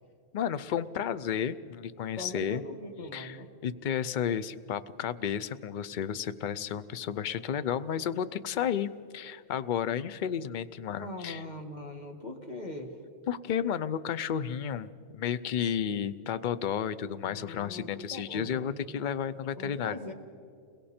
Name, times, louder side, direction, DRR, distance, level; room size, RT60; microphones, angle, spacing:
voice 1, 0.3-2.6 3.1-3.4 3.6-11.4 13.3-20.0, left 8 dB, 50° left, 14 dB, 0.6 m, -32 dB
voice 2, 2.2-3.5 10.9-13.0 17.2-18.9 19.6-20.1, left 1 dB, 35° left, 3 dB, 2.0 m, -41 dB
29.5 x 22.5 x 4.4 m, 2.5 s
omnidirectional pair, 1.3 m